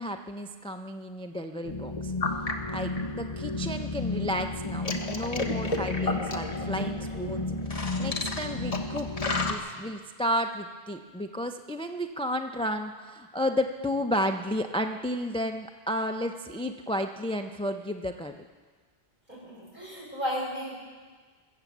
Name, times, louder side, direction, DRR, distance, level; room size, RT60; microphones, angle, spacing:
voice 1, 0.0-7.5 8.0-18.3, equal, 10° left, 6 dB, 0.4 m, -32 dB
sound 1, 1.6-9.5, left 2 dB, 35° left, 1.2 m, -31 dB
voice 2, 19.3-20.8, equal, 50° right, -6 dB, 6.1 m, -34 dB
23.0 x 8.0 x 7.3 m, 1.5 s
omnidirectional pair, 1.1 m